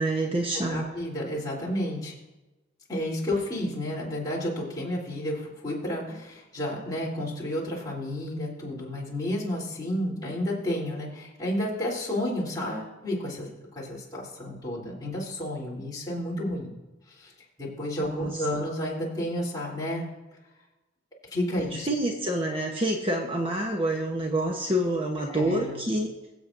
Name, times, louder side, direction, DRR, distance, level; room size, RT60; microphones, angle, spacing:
voice 1, 0.0-0.9 18.0-18.4 21.6-26.1, right 1 dB, 25° right, 0 dB, 0.9 m, -27 dB
voice 2, 0.7-2.1 2.9-16.7 17.1-17.3 17.6-20.1 21.3-21.9 25.3-25.8, left 1 dB, 20° left, -5 dB, 3.3 m, -31 dB
22.5 x 7.9 x 2.6 m, 1.1 s
head